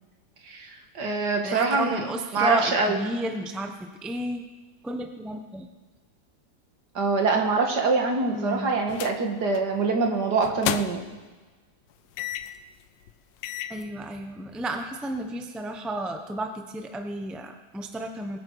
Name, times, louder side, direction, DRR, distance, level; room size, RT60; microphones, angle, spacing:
voice 1, 0.5-2.1 2.3-3.0 7.0-11.0, right 4 dB, 65° right, 3 dB, 2.2 m, -24 dB
voice 2, 1.4-4.4 4.8-5.7 8.3-8.7 13.7-18.4, right 1 dB, ahead, 5 dB, 0.6 m, -32 dB
sound 1, 8.9-9.2 9.5-9.8 10.4-11.2 12.2-12.6 13.1-13.2 13.4-13.8, left 11 dB, 85° left, 1.3 m, -32 dB
22.0 x 9.4 x 4.7 m, 1.3 s
omnidirectional pair, 1.9 m